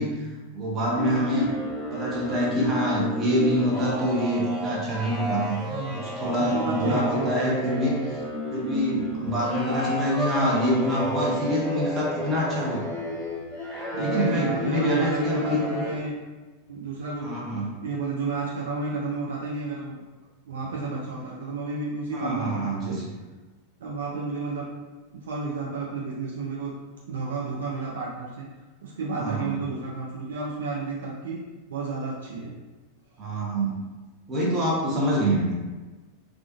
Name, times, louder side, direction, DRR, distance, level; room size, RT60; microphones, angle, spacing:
voice 1, 0.0-1.5 1.9-5.6 5.9-8.0 8.5-12.8 14.0-15.6 17.2-17.7 22.1-23.1 29.2-29.6 33.2-33.8 34.3-35.6, equal, 25° right, -4 dB, 0.8 m, -26 dB
sound 1, 0.9-15.9, equal, 5° left, 1.2 m, -32 dB
voice 2, 5.7-8.0 13.9-16.2 16.7-20.0 20.4-22.9 23.8-24.7 25.2-26.7 27.1-28.5 28.8-31.4 31.7-32.5, right 3 dB, 65° right, -4 dB, 0.4 m, -31 dB
2.4 x 2.3 x 2.5 m, 1.2 s
figure-of-eight pair, 90°, 0 cm